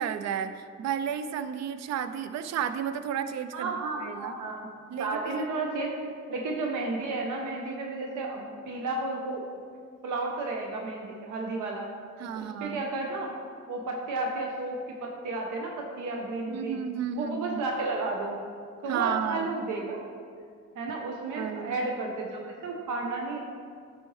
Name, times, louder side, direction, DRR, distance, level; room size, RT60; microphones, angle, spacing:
voice 1, 0.0-3.7 4.0-4.3 4.9-5.5 6.0-6.1 12.2-12.8 16.5-17.6 18.9-19.6 21.4-21.8, right 8 dB, 60° right, 10 dB, 0.5 m, -32 dB
voice 2, 3.5-4.7 5.0-5.9 6.3-9.4 10.0-11.9 12.3-13.3 13.7-16.8 17.1-18.4 18.8-20.0 20.7-23.4, right 3 dB, 85° right, 1 dB, 0.8 m, -32 dB
9.8 x 4.3 x 3.2 m, 2.1 s
cardioid pair, 90°, 30 cm